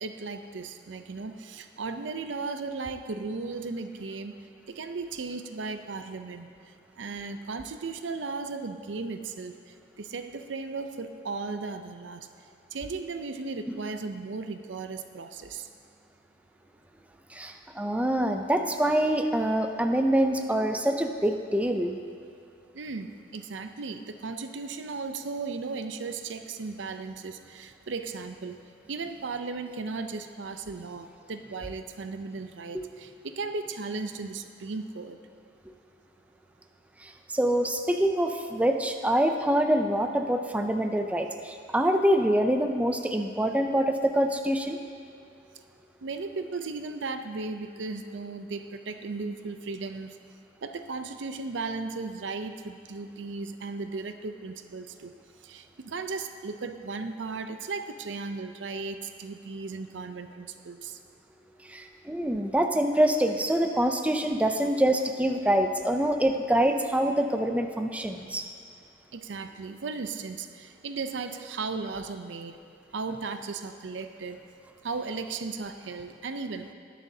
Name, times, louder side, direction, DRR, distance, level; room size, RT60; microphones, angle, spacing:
voice 1, 0.0-4.4 4.7-6.5 7.0-9.6 10.0-12.3 12.7-15.7 22.7-28.6 28.9-35.2 46.0-50.2 50.6-55.1 55.4-61.0 69.1-72.6 72.9-74.4 74.8-76.7, right 4 dB, 90° right, 8 dB, 0.6 m, -36 dB
voice 2, 17.3-22.0 32.7-32.8 37.0-44.8 61.7-68.5, right 1 dB, 10° right, 5 dB, 0.4 m, -25 dB
20.5 x 7.2 x 2.8 m, 2.4 s
head